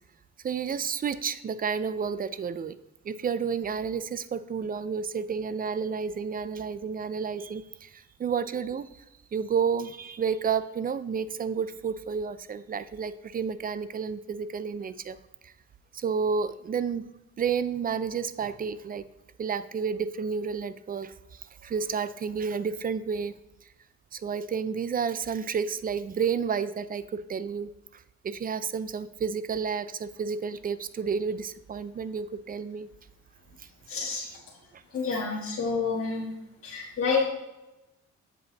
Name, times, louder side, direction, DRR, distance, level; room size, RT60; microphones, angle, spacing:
voice 1, 0.4-2.8 3.0-9.0 9.3-15.2 15.4-15.5 15.9-17.1 17.4-19.1 19.4-23.4 24.1-32.9 34.7-34.8, right 6 dB, 30° right, 15 dB, 0.4 m, -31 dB
voice 2, 33.9-34.3 34.9-36.3 36.6-37.2, left 4 dB, 50° left, -6 dB, 1.6 m, -28 dB
7.6 x 5.2 x 4.0 m, 0.97 s
cardioid pair, 90°, 30 cm